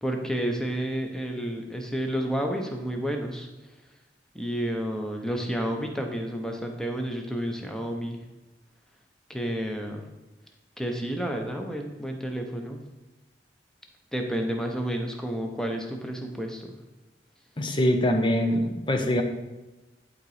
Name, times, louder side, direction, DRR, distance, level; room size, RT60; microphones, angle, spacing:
voice 1, 0.0-3.5 4.3-8.2 9.3-10.0 10.8-12.8 14.1-16.7, right 1 dB, 5° left, 3 dB, 0.9 m, -30 dB
voice 2, 17.6-19.2, left 1 dB, 25° left, 5 dB, 0.8 m, -23 dB
11.5 x 4.0 x 4.9 m, 1.1 s
head